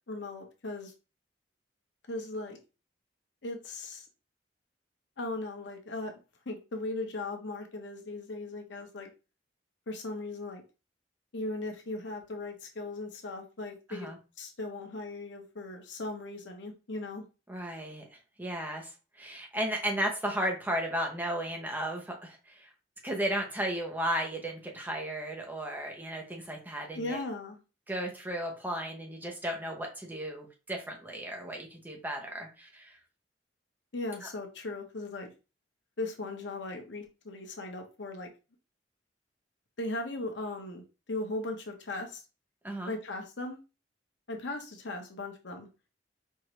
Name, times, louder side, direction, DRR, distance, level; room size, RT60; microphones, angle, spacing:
voice 1, 0.1-0.9 2.1-2.6 3.4-4.0 5.2-6.1 6.5-9.1 9.9-10.6 11.3-14.1 14.4-17.2 26.9-27.6 33.9-35.3 36.0-38.3 39.8-40.8 41.1-42.2 42.9-43.6 44.3-45.7, left 2 dB, 80° left, 4 dB, 0.8 m, -38 dB
voice 2, 17.5-18.1 18.4-22.7 23.0-27.2 27.9-33.0 34.2-34.3 42.6-42.9, right 1 dB, 10° right, 1 dB, 0.7 m, -34 dB
4.6 x 2.5 x 3.0 m, 0.30 s
head